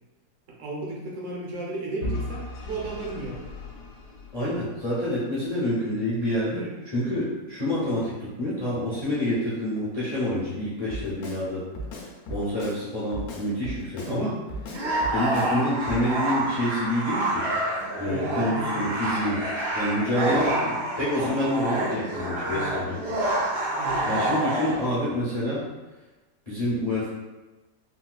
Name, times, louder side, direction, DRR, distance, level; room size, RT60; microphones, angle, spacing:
voice 1, 0.5-3.5 6.5-6.7 14.1-14.3 18.0-18.9 20.3-20.8 23.7-24.4, right 2 dB, 55° right, -3 dB, 1.0 m, -34 dB
Vehicle / Engine, 2.0-5.0, left 1 dB, 85° left, 1.2 m, -36 dB
voice 2, 4.3-11.6 12.3-14.3 15.1-17.5 18.0-19.4 19.7-23.0 24.1-25.6 26.5-27.1, left 1 dB, 50° left, -8 dB, 0.4 m, -27 dB
Drum kit, 10.9-11.4 11.7-12.8 13.1-14.2 14.5-15.5 15.9-16.0, equal, 70° left, 1.1 m, -36 dB
sound 1, 14.7-24.8, right 1 dB, 75° right, 1.6 m, -28 dB
3.9 x 2.3 x 2.3 m, 1.2 s
omnidirectional pair, 1.8 m